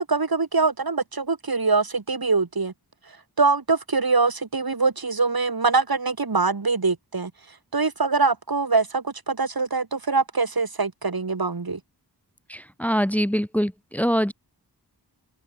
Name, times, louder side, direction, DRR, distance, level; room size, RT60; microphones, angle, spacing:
voice 1, 0.0-2.7 3.4-7.3 7.7-11.8, right 4 dB, 60° right, 5.2 m, -23 dB
voice 2, 12.5-14.3, equal, 5° left, 2.1 m, -24 dB
open air
wide cardioid pair, 75°, 40 cm